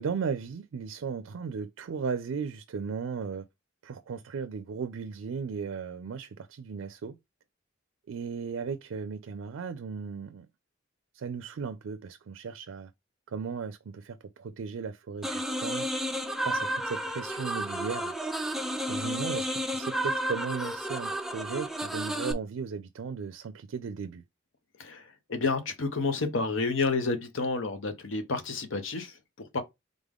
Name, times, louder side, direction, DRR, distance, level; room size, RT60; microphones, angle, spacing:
voice 1, 0.0-3.5 3.8-7.2 8.1-10.5 11.1-12.9 13.3-15.9 16.4-18.1 18.9-24.2, right 6 dB, 90° right, 0.4 m, -36 dB
sound 1, 15.2-22.3, equal, ahead, 0.4 m, -32 dB
voice 2, 24.8-29.6, left 3 dB, 80° left, 0.8 m, -30 dB
3.7 x 3.6 x 3.6 m
head